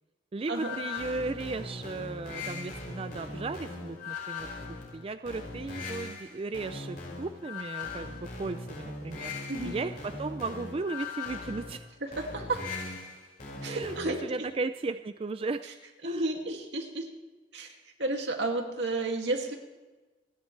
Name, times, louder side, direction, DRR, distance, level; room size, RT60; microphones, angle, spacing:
voice 1, 0.3-4.5 4.9-9.3 9.6-9.9 10.2-11.9 13.7-15.6 16.0-16.3, right 3 dB, 30° right, 10 dB, 0.4 m, -35 dB
sound 1, 0.5-14.3, left 3 dB, 55° left, 5.2 m, -40 dB
voice 2, 12.2-12.6 13.6-14.2 16.0-17.1 17.5-17.7 18.0-19.6, right 2 dB, 85° right, 2 dB, 2.3 m, -31 dB
29.5 x 10.5 x 3.3 m, 1.2 s
head